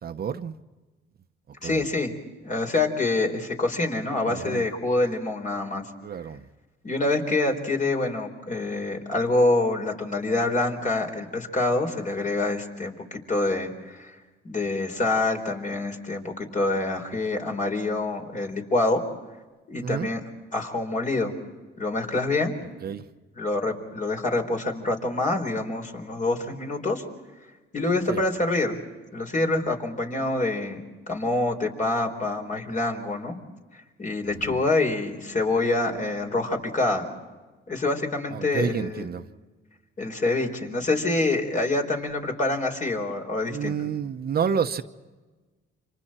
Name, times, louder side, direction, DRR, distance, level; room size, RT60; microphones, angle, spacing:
voice 1, 0.0-0.6 1.5-1.8 4.2-4.7 6.0-6.5 19.8-20.1 22.8-23.1 28.1-28.2 34.2-34.6 38.3-39.3 43.5-44.8, right 7 dB, 50° right, 8 dB, 1.0 m, -30 dB
voice 2, 1.6-2.1 2.4-5.8 6.8-14.1 14.4-19.0 19.7-20.2 20.5-21.4 21.8-22.5 23.4-27.0 27.7-28.8 29.1-30.8 31.1-33.4 34.0-37.1 37.7-39.1 40.0-43.8, left 2 dB, 40° left, 3 dB, 4.3 m, -26 dB
30.0 x 26.5 x 4.4 m, 1.3 s
cardioid pair, 90°, 20 cm